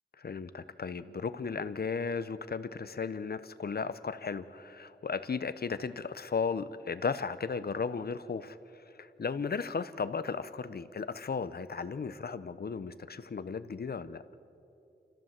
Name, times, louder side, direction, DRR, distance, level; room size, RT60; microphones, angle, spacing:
voice 1, 0.2-14.2, left 5 dB, 60° left, 13 dB, 0.8 m, -35 dB
29.5 x 14.0 x 7.4 m, 2.9 s
wide cardioid pair, 85°, 18 cm